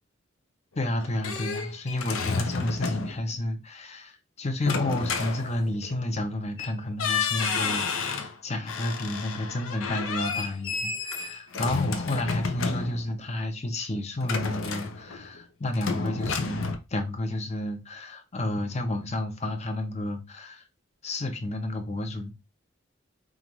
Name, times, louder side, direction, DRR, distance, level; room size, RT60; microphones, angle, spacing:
voice 1, 0.8-16.6 16.9-20.6 21.0-22.3, left 1 dB, 35° left, 0.7 m, -31 dB
sound 1, 1.0-3.3 4.6-5.9 6.6-6.7 7.0-8.3 8.7-13.2 14.2-15.4 15.7-16.8, left 5 dB, 80° left, 0.7 m, -31 dB
5.0 x 2.5 x 3.0 m
head